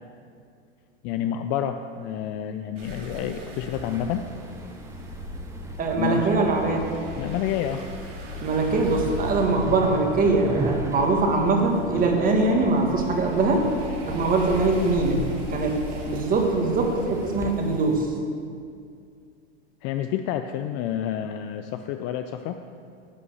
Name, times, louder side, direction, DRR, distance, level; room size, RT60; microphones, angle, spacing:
voice 1, 1.0-4.2 6.0-6.3 7.2-7.9 19.8-22.6, left 10 dB, 35° left, 7 dB, 0.4 m, -29 dB
sound 1, 2.8-18.0, left 1 dB, 90° right, 3.0 m, -37 dB
sound 2, 3.7-17.5, right 2 dB, 10° right, 0.7 m, -38 dB
voice 2, 5.8-6.8 8.4-13.7 14.1-15.2 15.5-15.8 16.1-18.1, right 3 dB, 25° right, 2 dB, 1.7 m, -22 dB
11.0 x 5.8 x 7.9 m, 2.3 s
hypercardioid pair, 125°, 35 cm